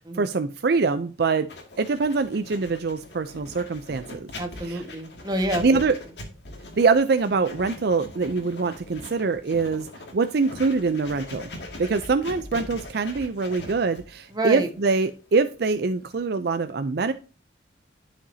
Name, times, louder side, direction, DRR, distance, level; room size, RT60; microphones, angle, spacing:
voice 1, 0.1-1.5 1.8-4.3 4.7-4.8 5.6-6.0 6.8-11.5 11.8-17.1, right 4 dB, 60° right, 10 dB, 0.5 m, -24 dB
Writing, 1.5-16.2, left 2 dB, 65° left, 2.2 m, -41 dB
voice 2, 4.4-5.6 14.3-14.7, right 1 dB, 25° right, 4 dB, 1.4 m, -27 dB
11.0 x 5.1 x 2.7 m, 0.34 s
head